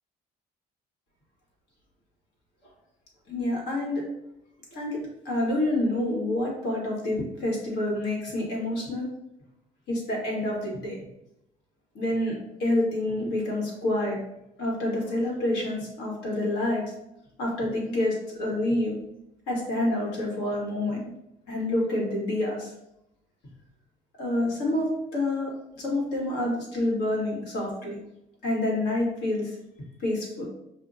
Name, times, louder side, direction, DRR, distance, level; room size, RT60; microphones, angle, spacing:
voice 1, 3.3-4.0 4.7-5.0 5.2-9.1 9.9-11.0 11.9-14.2 14.6-16.8 17.4-19.0 19.5-21.0 21.5-22.7 24.2-28.0 28.4-29.5 30.0-30.5, left 1 dB, 85° left, -2 dB, 1.4 m, -28 dB
5.5 x 2.2 x 2.5 m, 0.83 s
cardioid pair, 110°, 17 cm